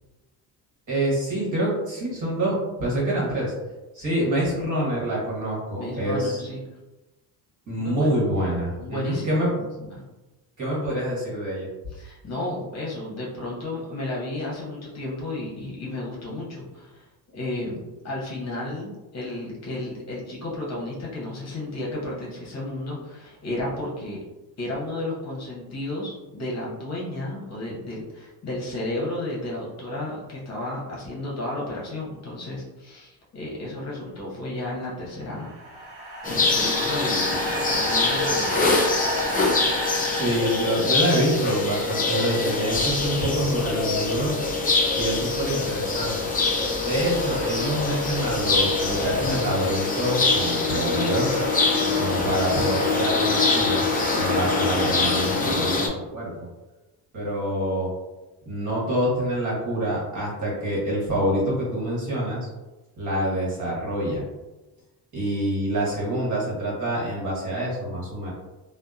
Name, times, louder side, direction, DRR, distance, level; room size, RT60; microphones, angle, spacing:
voice 1, 0.9-3.5 3.9-6.4 7.7-9.5 10.6-11.7 40.1-44.4 44.9-46.3 46.8-51.4 52.0-53.8 54.1-56.5 57.1-57.9 58.4-62.5 63.0-64.2 65.1-68.3, right 1 dB, 45° right, -5 dB, 1.2 m, -26 dB
voice 2, 5.8-6.6 7.7-8.1 8.8-10.0 11.9-17.0 17.3-24.2 24.6-35.5 35.8-35.9 36.2-38.7, left 1 dB, 40° left, -4 dB, 0.8 m, -33 dB
sound 1, 35.2-41.6, right 1 dB, 80° right, 0.9 m, -31 dB
sound 2, 36.2-55.9, left 3 dB, 20° left, 0.4 m, -24 dB
sound 3, 42.7-49.4, equal, 20° right, 1.0 m, -39 dB
2.7 x 2.1 x 2.3 m, 1.1 s
cardioid pair, 110°, 41 cm